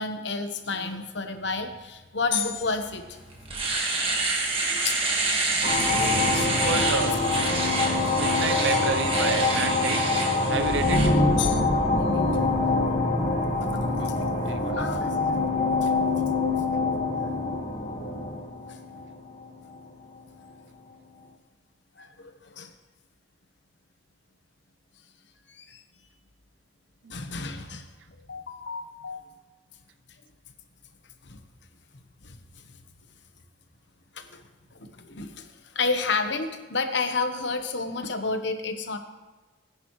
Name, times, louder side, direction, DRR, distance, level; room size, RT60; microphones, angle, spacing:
voice 1, 0.0-3.2 4.6-5.0 5.8-7.0 7.6-7.7 11.4-11.6 11.9-12.3 13.7-13.8 14.1-14.2 14.7-15.5 15.8-15.9 17.2-17.3 22.0-22.7 25.5-25.8 27.1-27.8 28.3-29.3 31.3-31.4 32.2-32.4 34.1-34.4 34.8-35.5 35.7-39.0, left 4 dB, 65° left, 7 dB, 1.1 m, -31 dB
Domestic sounds home sounds, 2.8-2.9 3.3-11.1, right 3 dB, 30° right, 1.7 m, -28 dB
sound 1, 5.6-19.8, left 3 dB, 35° left, 1.6 m, -25 dB
voice 2, 6.5-7.3 8.1-10.0 10.5-11.2 14.0-14.1 14.5-14.9 27.0-27.1, right 4 dB, 70° right, 11 dB, 0.6 m, -30 dB
19.5 x 10.0 x 3.2 m, 1.2 s
head